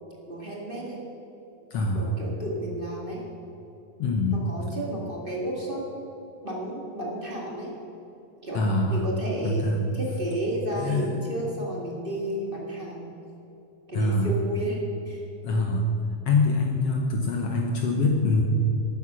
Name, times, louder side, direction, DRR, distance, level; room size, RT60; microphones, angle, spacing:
voice 1, 0.3-1.0 1.9-3.2 4.3-5.8 6.4-7.7 8.4-13.1 13.9-15.3, right 1 dB, 25° right, -3 dB, 1.3 m, -32 dB
voice 2, 1.7-2.1 4.0-4.4 8.5-9.0 9.4-9.8 10.8-11.1 13.9-14.3 15.4-15.8 16.2-18.4, left 3 dB, 80° left, 2 dB, 1.3 m, -24 dB
13.0 x 9.9 x 6.2 m, 2.9 s
omnidirectional pair, 4.1 m